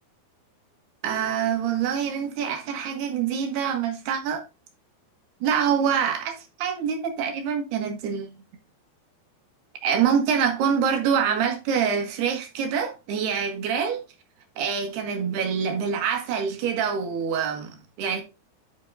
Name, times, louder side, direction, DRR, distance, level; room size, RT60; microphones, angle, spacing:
voice 1, 1.0-4.4 5.4-8.4 9.8-14.0 14.6-18.2, right 7 dB, 70° right, 3.4 m, -25 dB
10.5 x 4.8 x 3.8 m
omnidirectional pair, 5.1 m